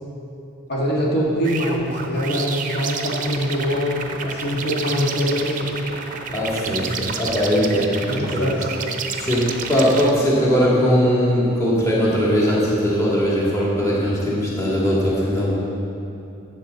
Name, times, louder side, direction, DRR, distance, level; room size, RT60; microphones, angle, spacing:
voice 1, 0.7-5.8 6.7-6.8 8.0-8.7 9.2-9.3, equal, 50° left, -4 dB, 1.7 m, -23 dB
sound 1, 1.4-10.1, right 5 dB, 40° right, 0.6 m, -30 dB
voice 2, 6.3-8.5 9.2-15.5, equal, 15° left, -7 dB, 1.9 m, -20 dB
13.0 x 8.1 x 4.0 m, 2.9 s
head